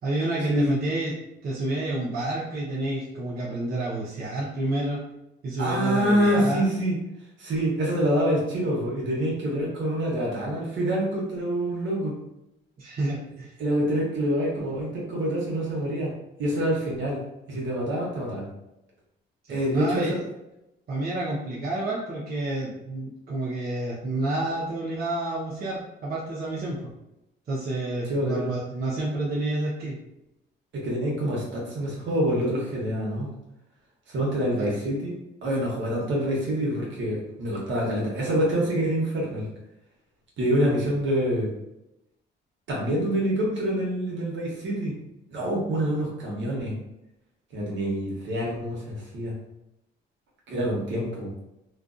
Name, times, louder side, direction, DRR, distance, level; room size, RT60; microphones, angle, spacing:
voice 1, 0.0-1.1 1.4-5.0 5.4-6.6 12.8-13.5 19.5-20.1 20.9-26.8 27.5-30.0 34.6-34.7, right 2 dB, 50° right, -6 dB, 0.7 m, -29 dB
voice 2, 5.6-7.0 7.4-12.1 13.6-16.1 16.4-17.2 17.5-18.5 19.5-20.2 28.1-28.5 30.7-33.3 34.1-39.4 40.4-41.5 42.7-44.9 45.3-46.8 47.5-49.3 50.5-51.3, equal, 70° right, -3 dB, 1.0 m, -26 dB
2.4 x 2.3 x 2.5 m, 0.90 s
cardioid pair, 90°, 20 cm